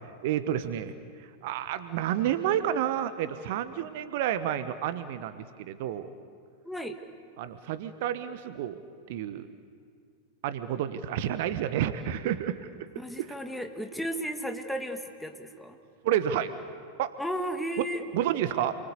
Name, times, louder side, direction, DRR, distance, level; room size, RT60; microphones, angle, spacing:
voice 1, 0.2-0.9 1.4-6.1 7.4-8.8 9.1-9.5 10.4-12.6 13.2-13.3 16.0-16.5 17.0-17.1 18.1-18.8, right 11 dB, 50° right, 12 dB, 1.2 m, -30 dB
voice 2, 6.6-7.0 13.0-15.8 17.2-18.0, equal, 5° left, 5 dB, 2.2 m, -34 dB
29.0 x 23.5 x 8.4 m, 2.1 s
figure-of-eight pair, 90°, 0 cm